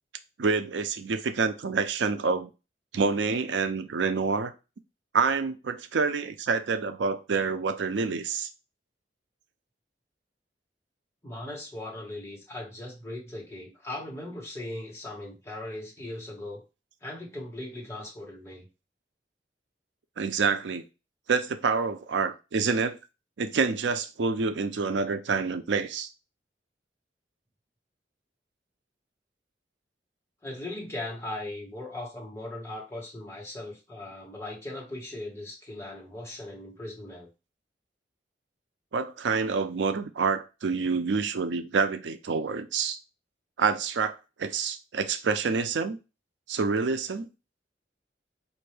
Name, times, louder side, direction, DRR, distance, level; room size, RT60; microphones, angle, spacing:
voice 1, 0.4-2.5 2.9-4.5 5.1-8.5 20.2-20.8 21.3-23.0 23.4-26.1 38.9-43.0 43.6-46.0 46.5-47.3, right 5 dB, 90° right, 0.5 m, -27 dB
voice 2, 11.2-16.6 17.0-18.7 30.4-37.3, left 1 dB, 15° left, 1.5 m, -39 dB
4.5 x 2.6 x 3.2 m
head